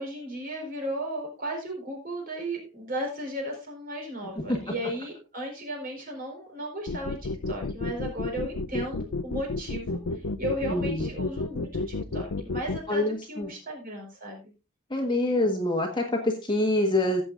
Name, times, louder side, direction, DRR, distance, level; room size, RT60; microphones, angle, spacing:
voice 1, 0.0-10.0 10.4-14.4, right 1 dB, 40° right, 1 dB, 4.5 m, -35 dB
sound 1, 6.9-12.8, left 3 dB, 75° left, 0.7 m, -31 dB
voice 2, 10.7-11.1 12.9-13.5 14.9-17.2, left 1 dB, 20° left, 2 dB, 1.4 m, -26 dB
17.0 x 7.7 x 2.5 m, 0.30 s
head